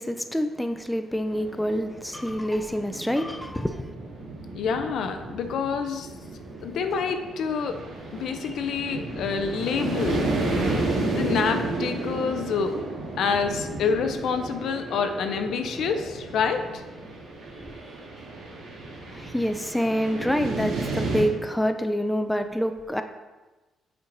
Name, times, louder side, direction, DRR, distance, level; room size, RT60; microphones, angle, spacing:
voice 1, 0.0-3.9 19.1-23.0, equal, 5° left, 7 dB, 0.5 m, -27 dB
sound 1, 1.3-21.2, right 2 dB, 80° right, 2.1 m, -32 dB
voice 2, 4.5-6.1 6.6-7.8 8.1-10.3 11.1-12.7 13.2-16.8, left 6 dB, 75° left, 7 dB, 0.6 m, -27 dB
6.8 x 4.4 x 3.9 m, 1.2 s
cardioid pair, 90°, 0 cm